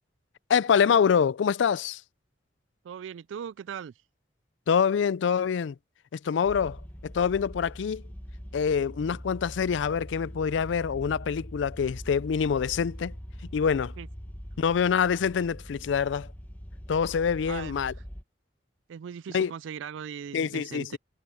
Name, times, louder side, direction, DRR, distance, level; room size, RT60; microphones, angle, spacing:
voice 1, 0.5-2.0 4.7-5.7 6.1-6.8 7.0-8.0 8.5-13.1 13.5-13.9 14.6-16.3 16.9-17.9 19.3-19.5 20.3-21.0, left 7 dB, 80° left, 0.4 m, -25 dB
voice 2, 2.8-3.9 14.0-14.1 17.5-18.0 18.9-21.0, right 8 dB, 90° right, 0.3 m, -39 dB
sound 1, 6.5-18.2, equal, 10° left, 1.3 m, -42 dB
head